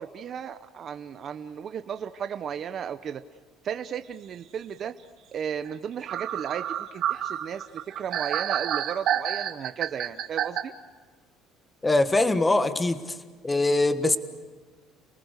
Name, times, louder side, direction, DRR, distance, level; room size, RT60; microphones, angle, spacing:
voice 1, 0.0-3.2 3.6-4.9 5.3-6.6 6.9-7.7 8.0-10.7, right 8 dB, 40° right, 10 dB, 0.8 m, -34 dB
sound 1, 5.7-5.8 6.1-10.6, right 10 dB, 60° right, 1.7 m, -29 dB
voice 2, 11.8-13.0 13.4-14.2, left 2 dB, 15° left, 10 dB, 1.5 m, -22 dB
29.5 x 19.5 x 6.7 m, 1.5 s
cardioid pair, 125°, 0 cm